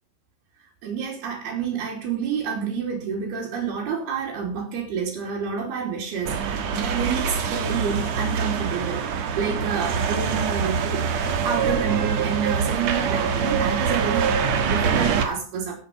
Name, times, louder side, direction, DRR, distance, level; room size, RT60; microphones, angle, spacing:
voice 1, 0.8-11.1 11.4-15.8, right 6 dB, 85° right, -4 dB, 5.1 m, -29 dB
sound 1, 6.2-15.2, right 6 dB, 55° right, 2.3 m, -24 dB
16.5 x 8.6 x 5.6 m, 0.39 s
omnidirectional pair, 4.4 m